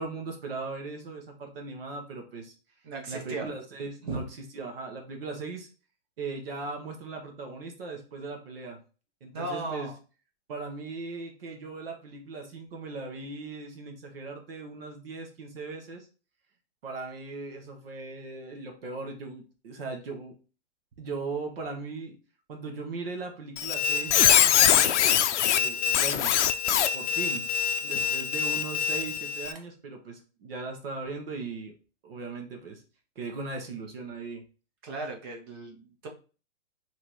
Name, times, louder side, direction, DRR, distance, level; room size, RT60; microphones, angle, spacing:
voice 1, 0.0-2.5 3.1-4.2 4.5-5.7 6.2-8.8 9.2-9.9 10.5-16.1 16.8-20.3 21.0-22.2 22.5-25.0 25.5-26.4 26.9-27.5 27.8-31.7 32.0-32.8 33.1-34.4, right 3 dB, 55° right, 3 dB, 1.1 m, -38 dB
voice 2, 2.8-3.5 4.0-4.3 9.3-9.9 27.9-28.1 34.8-36.1, right 3 dB, 20° right, 2 dB, 0.6 m, -36 dB
Squeak, 23.6-29.5, left 9 dB, 75° left, 0.5 m, -24 dB
5.0 x 2.9 x 3.0 m, 0.35 s
hypercardioid pair, 165°, 36 cm